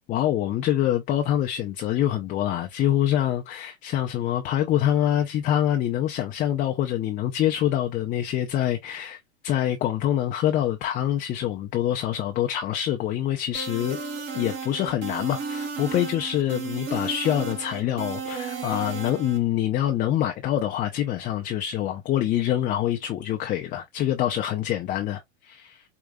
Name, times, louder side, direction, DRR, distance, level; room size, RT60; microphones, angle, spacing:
voice 1, 0.1-14.0 14.3-25.8, left 11 dB, 25° left, 0.5 m, -25 dB
sound 1, 13.5-19.4, right 5 dB, 35° right, 2.3 m, -33 dB
4.9 x 2.7 x 2.2 m
hypercardioid pair, 125°, 34 cm